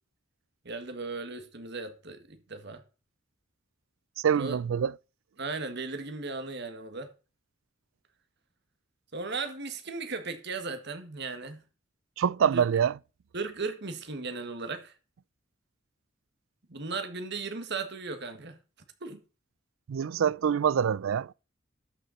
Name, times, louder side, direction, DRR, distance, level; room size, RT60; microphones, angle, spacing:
voice 1, 0.6-2.8 4.3-4.6 5.4-7.1 9.1-11.6 12.5-12.7 13.3-14.9 16.7-18.6 19.0-19.2, right 4 dB, 60° right, 1.8 m, -36 dB
voice 2, 4.2-4.9 12.2-12.9 19.9-21.3, right 8 dB, 75° right, 0.4 m, -25 dB
12.5 x 6.6 x 4.1 m
head